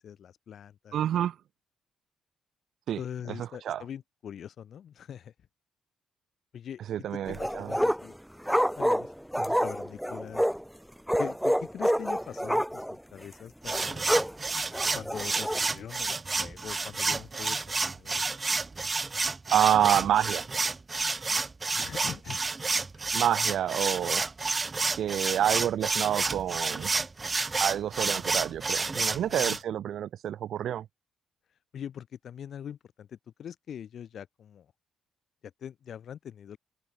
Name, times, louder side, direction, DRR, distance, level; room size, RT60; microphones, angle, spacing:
voice 1, 0.0-1.0 3.0-5.3 6.5-6.8 7.1-8.2 8.7-10.5 11.2-14.1 14.9-17.6 17.9-18.3 21.7-22.4 22.9-23.1 29.2-29.6 31.7-34.7 35.4-36.6, left 9 dB, 60° left, 5.7 m, -42 dB
voice 2, 0.9-1.4 2.9-3.0 3.4-3.8 6.9-7.7 19.5-20.4 23.1-24.2 24.9-26.9 27.6-30.8, right 10 dB, 70° right, 0.6 m, -28 dB
sound 1, 7.3-8.1 8.5-10.6 11.1-13.0 13.2-13.3 13.7-14.3 14.7-15.6, equal, ahead, 1.9 m, -27 dB
sound 2, 13.6-29.6, right 3 dB, 25° right, 0.4 m, -30 dB
cardioid pair, 90°, 0 cm